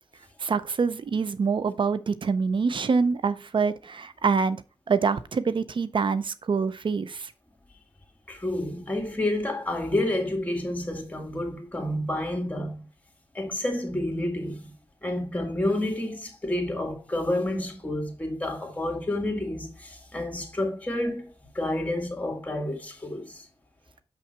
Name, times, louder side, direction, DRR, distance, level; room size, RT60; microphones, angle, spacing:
voice 1, 0.4-7.3, right 5 dB, 70° right, 0.5 m, -26 dB
voice 2, 8.3-12.8 13.3-14.7 15.0-23.5, left 1 dB, 15° left, 2.2 m, -29 dB
6.3 x 5.7 x 4.4 m
wide cardioid pair, 70°, 9 cm